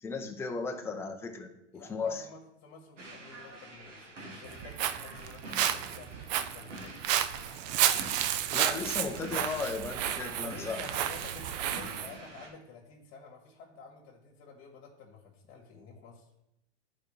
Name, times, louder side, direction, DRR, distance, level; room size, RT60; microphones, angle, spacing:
voice 1, 0.0-2.2 8.5-10.8, left 4 dB, 5° left, 3 dB, 0.6 m, -36 dB
voice 2, 1.7-7.0 10.2-16.3, left 4 dB, 35° left, -2 dB, 1.8 m, -50 dB
sound 1, 3.0-12.5, right 1 dB, 90° right, 2.0 m, -47 dB
Walk footsteps, 4.5-12.1, right 11 dB, 40° right, 0.4 m, -31 dB
11.0 x 4.7 x 3.2 m, 0.85 s
hypercardioid pair, 120°, 36 cm